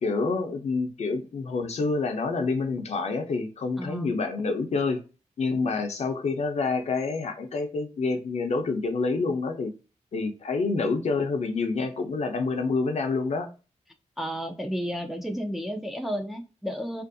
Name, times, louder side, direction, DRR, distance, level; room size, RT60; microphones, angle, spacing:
voice 1, 0.0-5.0 5.4-9.7 10.1-13.5, left 4 dB, 65° left, 0.6 m, -27 dB
voice 2, 3.8-4.1 14.2-17.0, equal, ahead, 0.4 m, -32 dB
2.6 x 2.5 x 2.5 m
wide cardioid pair, 115°, 12 cm